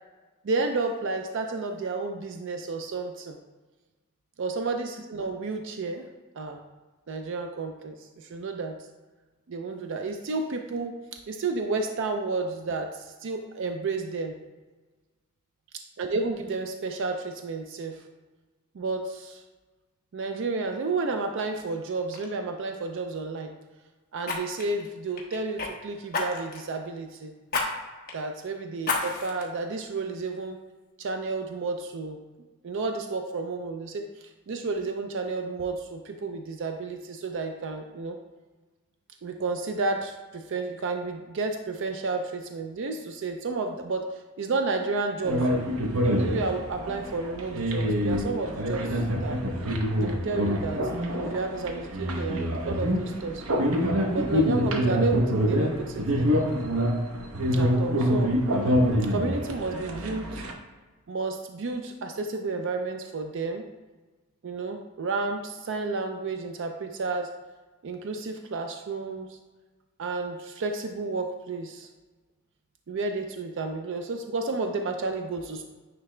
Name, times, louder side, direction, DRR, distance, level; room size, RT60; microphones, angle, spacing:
voice 1, 0.4-3.4 4.4-6.0 6.4-6.6 7.1-8.8 9.5-10.9 11.3-14.3 16.0-18.0 18.7-19.4 20.1-23.5 24.1-27.3 28.1-30.6 31.0-32.2 32.6-38.2 39.2-44.1 44.4-45.7 46.2-49.4 50.0-50.8 51.1-53.4 54.1-56.3 57.5-58.4 59.1-60.4 61.1-63.6 64.4-67.3 67.8-69.4 70.0-71.9 72.9-75.6, right 3 dB, 60° right, 5 dB, 0.4 m, -31 dB
Fire, 21.5-21.8 22.1-22.3 24.2-25.7 26.1-26.7 27.5-27.7 28.1-28.2 28.8-29.4 30.0-30.1, left 3 dB, 45° left, 1.1 m, -30 dB
sound 1, 45.2-60.5, equal, 80° right, 0.8 m, -26 dB
9.6 x 3.3 x 3.2 m, 1.3 s
head